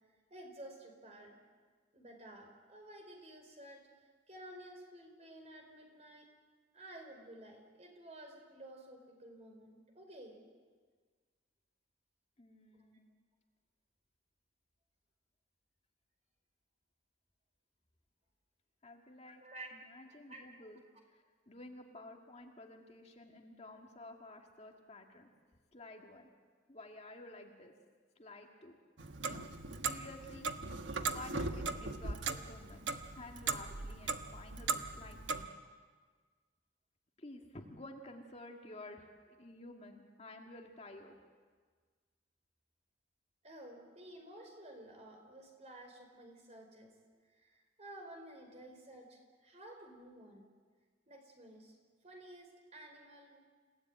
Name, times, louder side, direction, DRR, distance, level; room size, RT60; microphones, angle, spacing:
voice 1, 0.3-1.3 1.9-3.8 4.3-6.3 6.7-10.4 12.7-12.9 19.2-19.8 20.1-20.7 43.4-46.9 47.3-50.4 51.1-51.8 52.0-53.4, right 1 dB, 35° right, 3 dB, 4.9 m, -53 dB
voice 2, 12.4-13.0 18.8-19.4 19.7-20.8 21.1-25.3 25.7-26.3 26.7-27.7 28.2-28.8 29.2-29.5 29.8-35.5 37.2-41.2, left 2 dB, 35° left, 2 dB, 2.1 m, -52 dB
Clock, 29.0-35.5, right 4 dB, 80° right, 1.3 m, -39 dB
28.5 x 17.5 x 9.1 m, 1.5 s
head